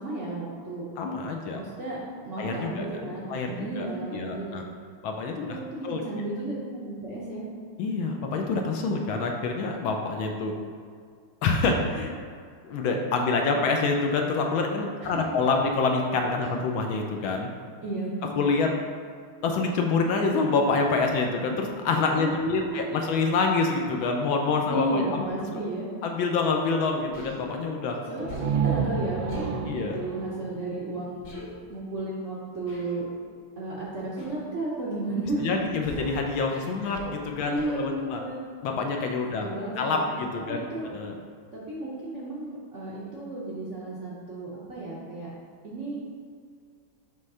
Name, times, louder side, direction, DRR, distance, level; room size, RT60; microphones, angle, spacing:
voice 1, 0.0-0.8 1.5-4.6 5.4-7.4 15.0-15.2 17.8-18.1 22.2-23.1 24.7-25.9 28.1-31.3 31.7-33.1 33.6-35.5 36.5-37.0 37.4-38.5 39.3-40.2 40.5-40.9 41.5-45.3 45.6-46.0, right 2 dB, 55° right, -7 dB, 0.8 m, -33 dB
voice 2, 1.0-1.6 2.3-4.6 5.0-5.6 5.8-6.0 7.8-10.5 11.4-12.1 12.6-17.5 18.4-18.7 19.4-25.2 26.0-28.0 29.7-30.0 35.4-38.2 38.6-39.5 39.8-41.1, left 4 dB, 75° left, 2 dB, 1.3 m, -27 dB
Human voice, 27.1-27.4 28.3-28.7 29.3-29.6 31.2-31.5 32.7-33.0 34.2-34.5 35.8-36.2 36.9-37.2 37.5-37.8, left 1 dB, 55° left, 1.9 m, -39 dB
sound 1, 28.2-31.9, right 7 dB, 75° right, 1.2 m, -31 dB
6.2 x 3.2 x 5.5 m, 2.1 s
omnidirectional pair, 2.4 m